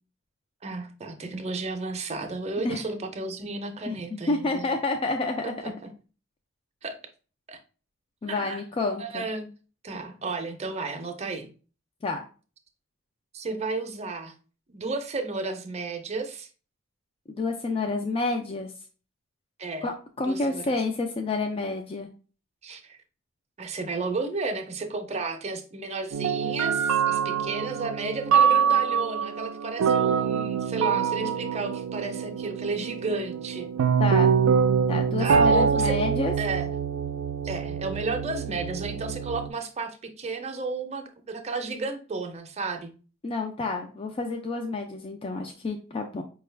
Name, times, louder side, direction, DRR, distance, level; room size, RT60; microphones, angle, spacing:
voice 1, 0.6-4.7 5.4-5.7 6.8-7.0 7.5-7.6 8.3-8.6 9.0-9.5 9.8-11.5 13.3-14.3 14.7-16.5 19.6-19.9 20.2-20.8 22.6-23.0 23.6-33.7 35.2-36.0 36.4-36.7 37.4-42.9, right 3 dB, 30° right, 0.6 m, -33 dB
voice 2, 3.9-5.5 8.2-9.3 12.0-12.2 17.3-18.7 19.8-22.1 34.0-34.3 34.9-36.3 43.2-46.2, left 3 dB, 25° left, 0.4 m, -29 dB
sound 1, 26.1-39.5, right 6 dB, 90° right, 0.4 m, -25 dB
5.0 x 2.3 x 3.2 m
head